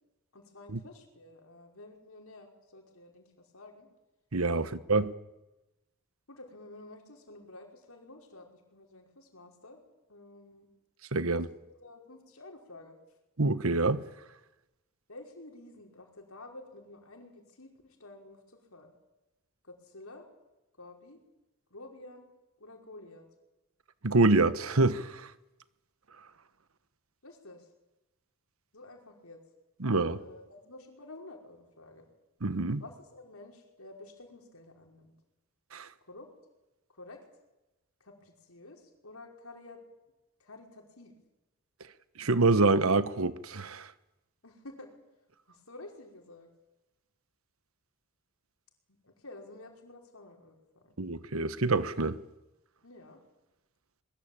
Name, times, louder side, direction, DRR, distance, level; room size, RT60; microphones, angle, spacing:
voice 1, 0.3-3.3 3.5-3.9 4.5-4.9 6.3-9.8 10.1-10.7 11.2-11.4 11.8-12.9 15.1-18.9 19.6-20.2 20.8-21.2 21.7-22.3 22.6-23.2 27.2-27.7 28.7-29.4 30.2-32.1 32.8-35.1 36.0-36.3 36.9-37.2 38.0-39.8 40.4-41.1 44.4-44.9 45.5-46.5 48.9-50.9 52.8-53.2, left 2 dB, 85° left, 5.4 m, -50 dB
voice 2, 4.3-5.1 11.1-11.5 13.4-14.0 24.0-25.3 29.8-30.2 32.4-32.8 35.7-35.9 42.2-43.9 51.0-52.2, right 3 dB, 70° right, 1.2 m, -26 dB
22.5 x 22.0 x 8.9 m
head